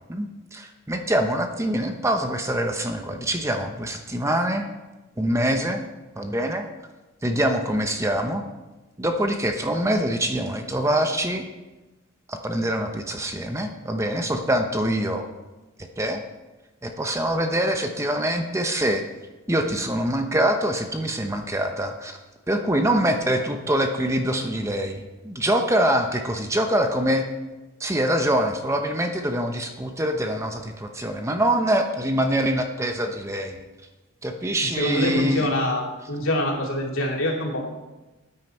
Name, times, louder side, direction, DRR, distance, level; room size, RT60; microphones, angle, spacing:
voice 1, 0.0-4.7 5.2-5.8 6.2-6.7 7.2-8.4 9.0-11.4 12.3-15.3 16.0-16.2 16.8-19.0 19.5-22.2 22.5-27.3 27.8-33.6 34.2-35.5, right 1 dB, 15° right, 5 dB, 0.8 m, -24 dB
voice 2, 34.8-37.6, left 1 dB, 75° left, -1 dB, 2.9 m, -25 dB
13.5 x 9.5 x 4.4 m, 1.1 s
head